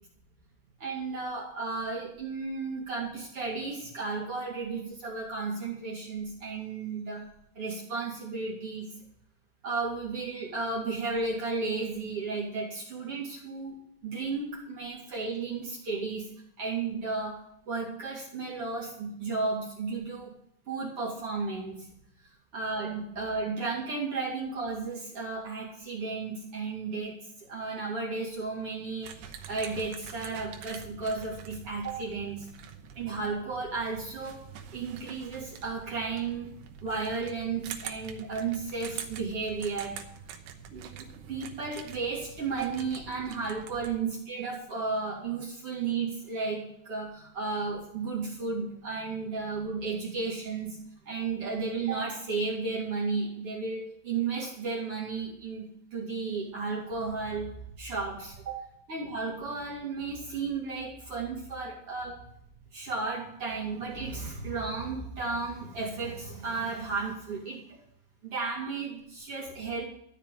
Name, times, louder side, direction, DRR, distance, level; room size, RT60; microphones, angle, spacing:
voice 1, 0.8-7.2 7.5-8.9 9.6-13.7 14.0-17.4 17.7-20.3 20.7-21.9 22.5-32.5 32.9-34.4 34.7-40.0 40.7-50.8 51.1-55.6 55.9-62.2 62.7-67.8 68.2-69.9, right 4 dB, 40° right, -4 dB, 2.7 m, -34 dB
Shaking Gun, 29.0-44.0, right 8 dB, 85° right, 3.2 m, -45 dB
13.0 x 5.6 x 8.7 m, 0.74 s
omnidirectional pair, 5.0 m